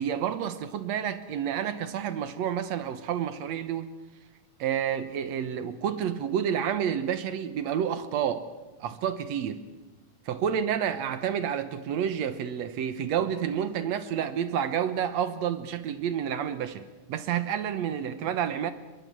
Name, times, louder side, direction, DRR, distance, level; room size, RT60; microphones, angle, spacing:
voice 1, 0.0-3.9 4.6-8.5 8.8-9.6 10.3-18.7, right 9 dB, 70° right, 2.2 m, -29 dB
23.5 x 22.0 x 7.5 m
omnidirectional pair, 3.5 m